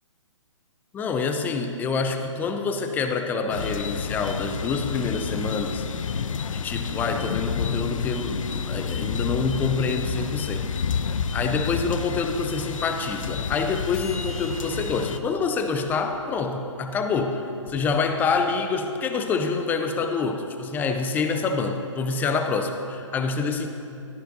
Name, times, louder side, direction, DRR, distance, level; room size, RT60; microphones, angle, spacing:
voice 1, 0.9-5.9 6.5-10.7 11.3-23.7, left 4 dB, 10° left, 6 dB, 0.5 m, -27 dB
sound 1, 3.5-15.2, left 6 dB, 80° left, 0.5 m, -29 dB
sound 2, 9.9-17.7, right 1 dB, 35° left, 2.3 m, -47 dB
14.5 x 13.0 x 2.6 m, 2.8 s
hypercardioid pair, 135°, 17 cm